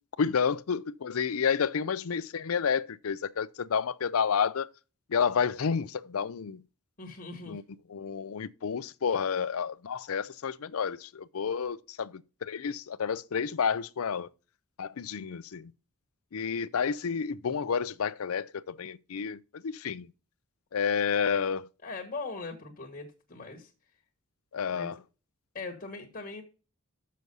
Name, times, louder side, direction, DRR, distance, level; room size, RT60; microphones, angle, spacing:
voice 1, 0.2-4.7 5.1-6.6 7.5-7.6 7.9-14.3 14.8-15.7 16.3-20.1 20.7-21.7 24.5-25.0, left 6 dB, 75° left, 0.5 m, -30 dB
voice 2, 7.0-7.6 21.8-23.7 24.7-24.9 25.5-26.4, left 3 dB, 40° left, 1.4 m, -40 dB
6.7 x 6.3 x 5.3 m
head